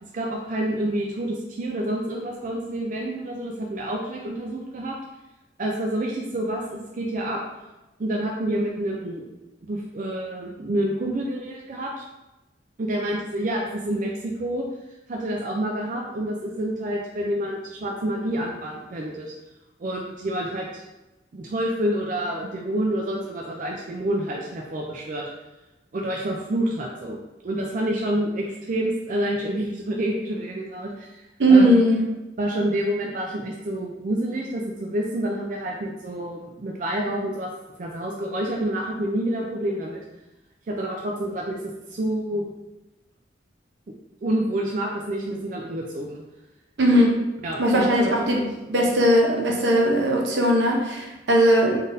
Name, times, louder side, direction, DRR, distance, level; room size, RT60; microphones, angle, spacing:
voice 1, 0.0-5.0 5.6-7.4 8.0-9.2 9.6-12.0 12.8-14.7 15.1-19.3 19.8-20.8 21.3-25.3 25.9-27.2 27.4-31.2 31.5-31.8 32.4-37.5 37.8-40.0 40.7-41.6 41.9-42.4 44.2-46.2 47.4-48.5, right 1 dB, 45° right, -1 dB, 0.4 m, -28 dB
voice 2, 31.4-32.0 46.8-47.1 47.6-48.4 48.7-51.8, right 1 dB, 75° right, 0 dB, 0.8 m, -18 dB
3.9 x 3.8 x 2.6 m, 1.0 s
head